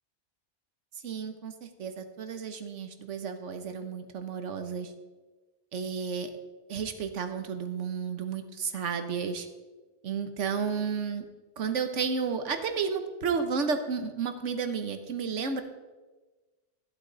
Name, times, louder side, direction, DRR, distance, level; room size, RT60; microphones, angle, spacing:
voice 1, 1.0-4.9 5.7-6.3 6.7-9.5 10.0-11.3 11.6-15.6, right 6 dB, 90° right, 8 dB, 1.3 m, -32 dB
14.0 x 8.6 x 3.9 m, 1.2 s
omnidirectional pair, 1.2 m